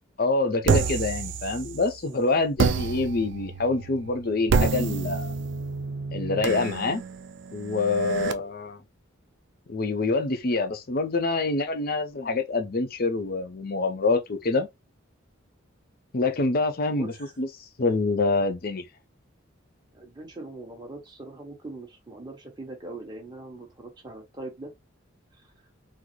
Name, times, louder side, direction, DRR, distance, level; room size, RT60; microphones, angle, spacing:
voice 1, 0.2-5.3 6.1-7.0 7.5-8.8 9.7-14.7 16.1-17.5 17.8-18.9, left 3 dB, 45° left, 0.6 m, -26 dB
sound 1, 0.6-2.0 2.6-8.3, right 5 dB, 60° right, 0.4 m, -28 dB
voice 2, 16.9-17.3 19.9-24.7, right 2 dB, 20° right, 1.1 m, -41 dB
3.9 x 2.0 x 3.0 m
head